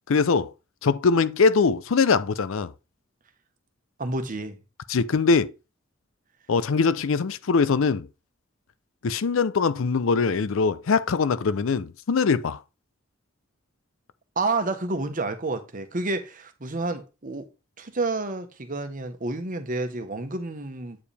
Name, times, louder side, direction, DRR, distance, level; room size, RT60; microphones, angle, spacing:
voice 1, 0.1-0.5 0.8-2.7 4.9-5.5 6.5-8.1 9.0-12.6, left 4 dB, 70° left, 0.5 m, -22 dB
voice 2, 4.0-4.6 14.4-17.5 17.8-21.0, right 3 dB, 40° right, 1.1 m, -29 dB
8.5 x 4.9 x 3.3 m
head